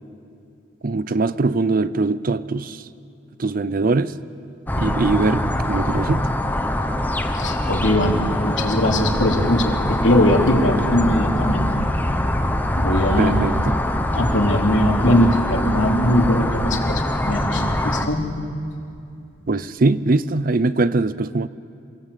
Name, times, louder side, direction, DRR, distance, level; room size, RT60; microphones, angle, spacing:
voice 1, 0.8-2.8 3.4-4.1 4.8-6.3 13.2-13.8 19.5-21.5, right 3 dB, 45° right, 0.5 m, -21 dB
sound 1, 4.7-18.1, left 1 dB, 10° left, 0.9 m, -23 dB
voice 2, 7.3-11.7 12.8-13.3 14.1-18.2, left 1 dB, 70° left, 3.1 m, -20 dB
28.0 x 16.5 x 8.4 m
head